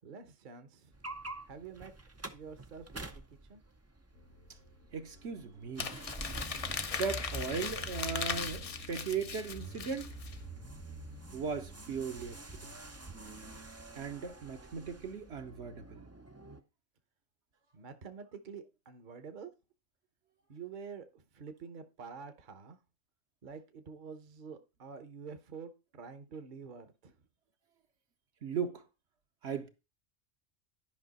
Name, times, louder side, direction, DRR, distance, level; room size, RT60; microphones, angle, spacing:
voice 1, 0.0-0.9 1.5-1.9 2.3-3.2 3.5-3.6 17.7-19.5 20.5-22.8 23.4-27.1, right 5 dB, 45° right, 0.9 m, -48 dB
sound 1, 0.9-16.6, right 2 dB, 25° right, 0.3 m, -47 dB
sound 2, 4.1-13.6, left 1 dB, 75° left, 1.9 m, -54 dB
voice 2, 4.9-5.9 7.0-10.1 11.3-12.7 13.9-16.1 28.4-28.8 29.4-29.7, right 5 dB, 65° right, 1.1 m, -37 dB
Crumpling crinkling, 5.8-10.4, left 6 dB, 45° left, 0.5 m, -38 dB
11.0 x 5.5 x 4.0 m
omnidirectional pair, 1.3 m